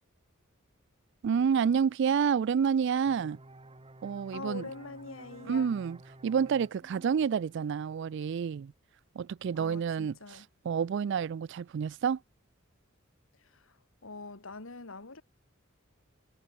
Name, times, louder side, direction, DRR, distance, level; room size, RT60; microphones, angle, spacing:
voice 1, 1.2-3.4 4.0-4.7 5.5-6.0 6.2-8.7 9.2-10.1 10.7-12.2, right 7 dB, 60° right, 0.3 m, -28 dB
sound 1, 3.1-8.5, right 1 dB, 25° right, 1.6 m, -53 dB
voice 2, 4.3-5.7 9.5-10.5 13.3-15.2, left 3 dB, 75° left, 2.2 m, -44 dB
head